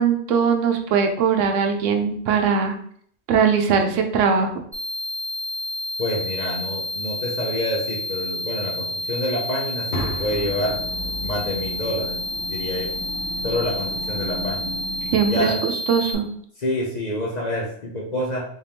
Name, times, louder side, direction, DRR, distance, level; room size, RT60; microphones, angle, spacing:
voice 1, 0.0-2.7 3.3-4.5 15.1-16.2, right 6 dB, 80° right, 4 dB, 0.9 m, -20 dB
sound 1, 4.7-16.1, left 1 dB, 15° right, 0.8 m, -30 dB
voice 2, 6.0-10.8 11.2-12.2 12.5-12.9 13.4-14.7 15.3-15.6 16.6-18.4, left 1 dB, 45° left, -2 dB, 0.6 m, -27 dB
sound 2, 9.9-13.9, equal, 85° left, 1.2 m, -35 dB
sound 3, 10.0-15.3, left 1 dB, 30° left, 1.0 m, -36 dB
3.6 x 3.4 x 2.7 m, 0.63 s
omnidirectional pair, 1.3 m